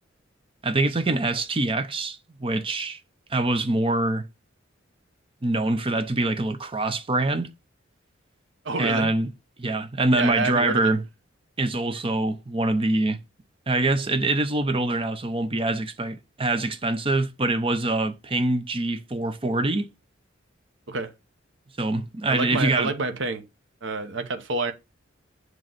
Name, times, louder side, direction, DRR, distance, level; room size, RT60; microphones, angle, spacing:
voice 1, 0.6-3.0 3.3-4.3 5.4-7.5 8.8-9.3 9.6-11.0 11.6-13.2 13.7-19.9 21.8-22.9, right 2 dB, 30° right, 0.8 m, -24 dB
voice 2, 8.6-9.1 10.2-10.9 20.9-21.1 22.3-23.4 23.8-24.7, right 3 dB, 65° right, 0.9 m, -28 dB
7.8 x 3.1 x 5.5 m
head